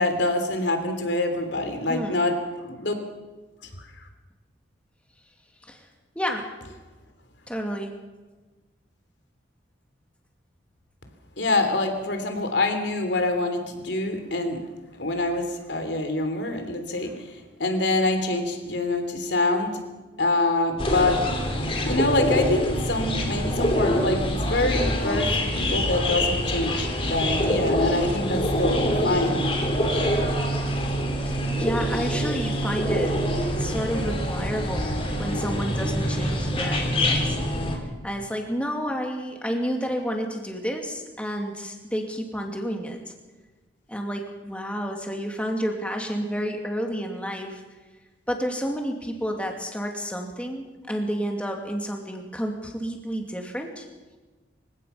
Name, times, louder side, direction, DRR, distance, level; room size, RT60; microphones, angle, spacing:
voice 1, 0.0-2.9 3.8-3.9 11.4-14.6 14.9-19.8 20.2-21.2 21.8-29.4, left 2 dB, 70° left, 6 dB, 3.2 m, -25 dB
voice 2, 1.9-2.2 5.6-5.9 6.1-6.5 7.5-7.9 31.2-33.2 33.6-34.9 35.2-37.4 37.7-43.0 43.9-47.6 48.3-53.8, equal, 5° left, 2 dB, 2.6 m, -30 dB
sound 1, 20.8-37.8, equal, 30° left, 2.9 m, -25 dB
27.5 x 16.5 x 5.8 m, 1.3 s
head